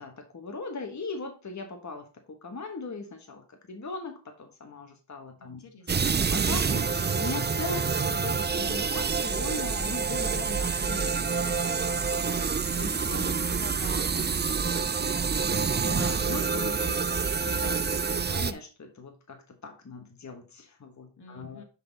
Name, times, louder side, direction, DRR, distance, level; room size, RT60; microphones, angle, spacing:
voice 1, 0.0-5.6 6.1-7.8 8.1-12.1 12.8-13.3 15.6-21.6, left 3 dB, 40° left, 4 dB, 1.5 m, -39 dB
voice 2, 5.4-6.1 7.7-8.1 12.0-15.5 21.2-21.6, left 4 dB, 65° left, 5 dB, 1.9 m, -48 dB
sound 1, 5.9-18.5, right 5 dB, 25° right, 0.5 m, -27 dB
9.9 x 4.2 x 4.1 m, 0.34 s
cardioid pair, 50°, 43 cm